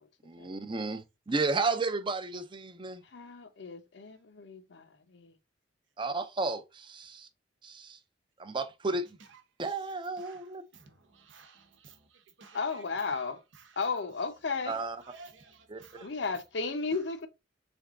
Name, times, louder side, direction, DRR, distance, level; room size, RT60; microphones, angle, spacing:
voice 1, 0.2-3.0 6.0-7.3 7.6-8.0 8.4-9.2 9.6-10.6 14.7-15.0 15.7-15.8, right 3 dB, 25° right, 0.5 m, -33 dB
voice 2, 3.1-5.3 12.5-13.4 13.8-14.8 16.0-17.3, left 4 dB, 65° left, 0.7 m, -34 dB
voice 3, 9.2-14.1 14.6-16.3 16.9-17.1, right 4 dB, 80° right, 1.0 m, -56 dB
3.8 x 3.5 x 3.6 m
head